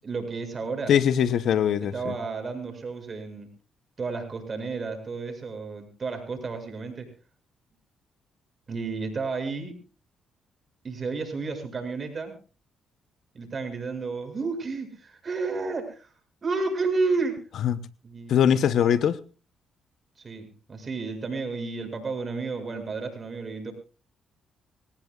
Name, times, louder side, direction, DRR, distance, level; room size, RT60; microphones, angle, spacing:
voice 1, 0.0-0.9 1.9-3.5 4.0-7.1 8.7-9.8 10.8-12.3 13.3-16.1 16.4-17.4 18.0-18.5 20.2-23.7, right 4 dB, 45° right, 6 dB, 7.2 m, -31 dB
voice 2, 0.9-2.1 17.6-17.8 18.3-19.2, left 9 dB, 70° left, 14 dB, 0.9 m, -21 dB
26.0 x 18.0 x 2.4 m, 0.35 s
supercardioid pair, 65°, 0 cm